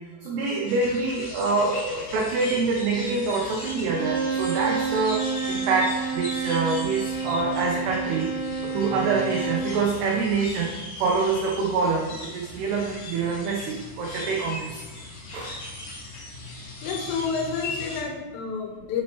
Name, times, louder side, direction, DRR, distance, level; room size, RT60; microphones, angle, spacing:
voice 1, 0.2-8.4 8.6-14.8 15.3-15.5, right 4 dB, 85° right, -1 dB, 2.3 m, -26 dB
sound 1, 0.7-18.0, left 2 dB, 65° left, 1.5 m, -38 dB
Bowed string instrument, 3.8-9.7, right 5 dB, 50° right, 2.0 m, -29 dB
voice 2, 16.8-19.0, left 5 dB, 85° left, 1 dB, 3.5 m, -29 dB
9.2 x 4.2 x 3.0 m, 1.2 s
omnidirectional pair, 5.6 m